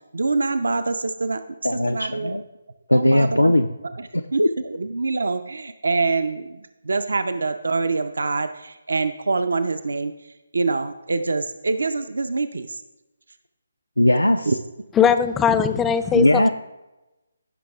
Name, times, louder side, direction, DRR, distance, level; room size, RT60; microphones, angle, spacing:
voice 1, 0.1-2.4 2.9-10.1 10.5-12.8 14.5-14.6, right 3 dB, 65° right, 10 dB, 0.5 m, -25 dB
voice 2, 1.6-2.4 2.9-3.7 4.1-4.5 14.0-14.5 16.1-16.5, left 1 dB, 85° left, 7 dB, 0.5 m, -18 dB
voice 3, 15.0-16.5, left 7 dB, 10° left, 10 dB, 0.4 m, -19 dB
16.0 x 5.9 x 3.4 m, 1.0 s
figure-of-eight pair, 145°, 0 cm